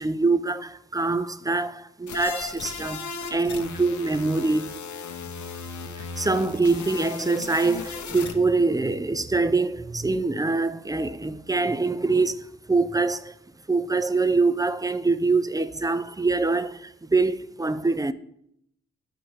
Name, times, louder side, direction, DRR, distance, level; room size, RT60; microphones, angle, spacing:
voice 1, 0.0-4.9 6.0-13.3 13.7-18.1, right 3 dB, 15° right, 0.4 m, -24 dB
sound 1, 2.1-8.3, left 5 dB, 75° left, 0.7 m, -37 dB
11.0 x 4.2 x 3.1 m
cardioid pair, 60°, 30 cm